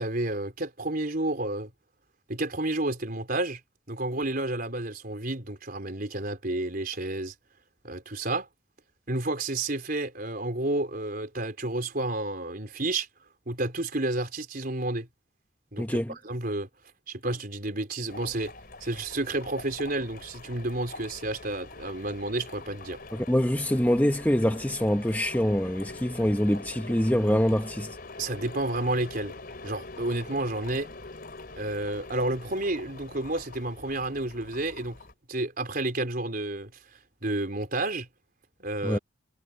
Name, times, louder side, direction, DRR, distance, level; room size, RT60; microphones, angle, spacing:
voice 1, 0.0-1.7 2.3-3.6 3.9-7.3 7.8-8.5 9.1-13.1 13.5-15.1 15.7-16.7 17.1-18.5 18.8-23.0 28.2-29.3 29.6-30.9 31.6-35.0 35.3-36.7 37.2-38.1 38.6-39.0, right 2 dB, 45° right, 4.2 m, -30 dB
voice 2, 15.8-16.1 23.1-28.0 38.8-39.0, equal, 10° left, 1.0 m, -25 dB
sound 1, 18.1-35.1, left 3 dB, 45° left, 3.9 m, -44 dB
head